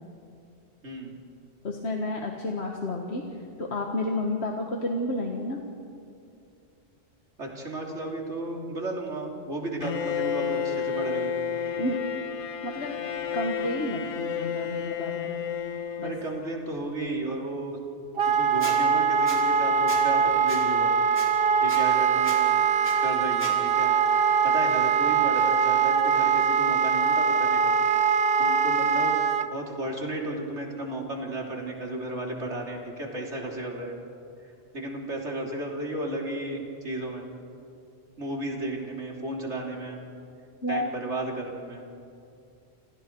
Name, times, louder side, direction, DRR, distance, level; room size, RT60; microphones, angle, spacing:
voice 1, 1.6-3.3 3.6-5.6 11.8-12.0 12.6-13.0 13.3-15.4 16.0-16.1 40.6-40.9, left 1 dB, 70° left, 1 dB, 1.9 m, -30 dB
voice 2, 7.4-11.4 16.0-17.8 18.2-20.9 21.6-22.5 23.0-23.9 24.4-27.7 28.4-29.1 29.4-34.0 34.7-37.3 38.2-40.0 40.7-41.8, right 1 dB, 90° right, -1 dB, 3.6 m, -34 dB
Bowed string instrument, 9.8-16.7, left 7 dB, 90° left, 1.4 m, -31 dB
Wind instrument woodwind instrument, 18.2-29.5, right 6 dB, 60° right, 1.1 m, -22 dB
Squeak, 18.6-18.7 19.3-19.4 19.9-20.0 20.5-20.6 21.1-21.3 21.7-21.8 22.2-22.4 22.8-22.9 23.4-23.5, equal, 10° left, 4.8 m, -36 dB
29.5 x 28.0 x 4.7 m, 2.5 s
omnidirectional pair, 1.1 m